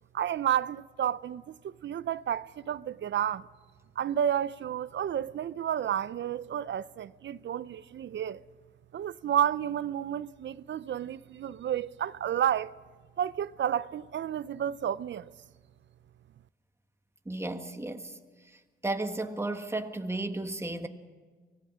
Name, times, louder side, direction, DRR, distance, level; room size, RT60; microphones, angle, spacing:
voice 1, 0.1-3.5 4.0-8.4 8.9-12.7 13.2-15.2, right 9 dB, 65° right, 0.5 m, -31 dB
voice 2, 17.2-18.1 18.8-20.9, right 2 dB, 10° right, 1.6 m, -33 dB
24.5 x 17.5 x 6.2 m
cardioid pair, 75°, 21 cm